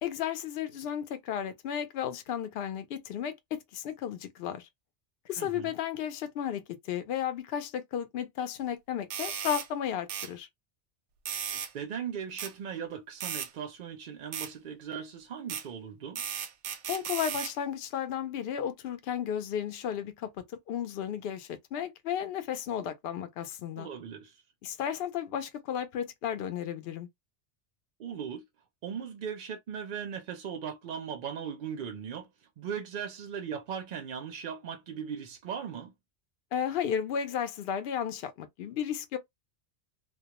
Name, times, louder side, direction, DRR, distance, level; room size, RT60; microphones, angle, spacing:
voice 1, 0.0-4.7 5.3-10.5 16.9-23.9 24.6-27.1 36.5-39.2, left 9 dB, 65° left, 0.7 m, -34 dB
voice 2, 5.4-5.7 11.5-16.2 23.8-24.4 28.0-28.4 28.8-35.9, right 7 dB, 60° right, 0.5 m, -38 dB
sound 1, 9.1-9.7 10.1-10.3 11.3-11.7 12.4-12.5 13.2-13.5 14.3-14.5 15.5-15.6 16.2-17.5, right 8 dB, 90° right, 0.9 m, -35 dB
2.3 x 2.1 x 2.8 m
omnidirectional pair, 1.2 m